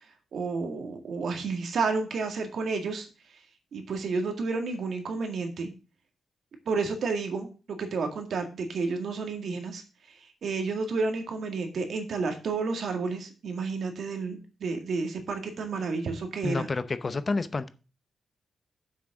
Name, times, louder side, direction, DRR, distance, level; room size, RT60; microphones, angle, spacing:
voice 1, 0.3-3.1 3.7-5.7 6.7-7.5 7.8-9.8 10.4-16.7, right 4 dB, 65° right, 5 dB, 1.9 m, -31 dB
voice 2, 16.4-17.7, left 3 dB, 30° left, 12 dB, 0.7 m, -29 dB
7.4 x 6.2 x 5.9 m, 0.33 s
wide cardioid pair, 125°, 0 cm